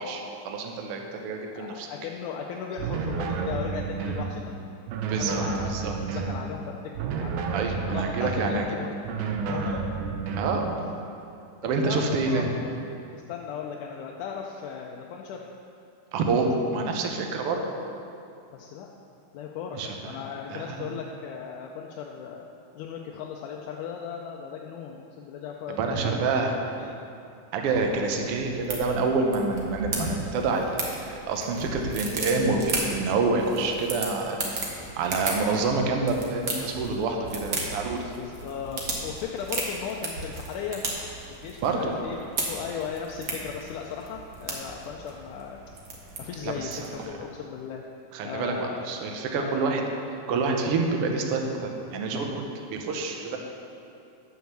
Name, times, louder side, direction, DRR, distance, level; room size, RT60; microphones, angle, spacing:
voice 1, 0.0-1.9 5.1-5.9 7.5-8.7 10.4-10.8 11.6-12.5 16.1-17.6 19.7-20.2 20.5-20.9 25.8-26.6 27.5-34.6 35.0-38.1 41.6-42.0 46.4-46.9 48.1-49.8 50.3-52.4 52.7-53.4, right 3 dB, 70° right, 3 dB, 1.4 m, -27 dB
voice 2, 1.6-4.7 5.2-6.8 7.0-7.4 7.9-8.9 9.5-9.9 10.2-10.4 11.6-12.7 13.1-15.4 18.5-18.9 19.3-22.4 22.8-26.2 26.8-27.0 38.2-40.8 41.3-45.6 46.2-47.8 48.2-48.9 49.4-49.6, left 7 dB, 80° left, 0 dB, 2.0 m, -37 dB
sound 1, 2.8-4.4 4.9-6.4 6.9-8.5 9.0-10.6, right 5 dB, 90° right, 1.3 m, -30 dB
sound 2, 27.6-47.1, right 3 dB, 55° right, 1.2 m, -35 dB
9.3 x 6.3 x 6.8 m, 2.6 s
omnidirectional pair, 3.7 m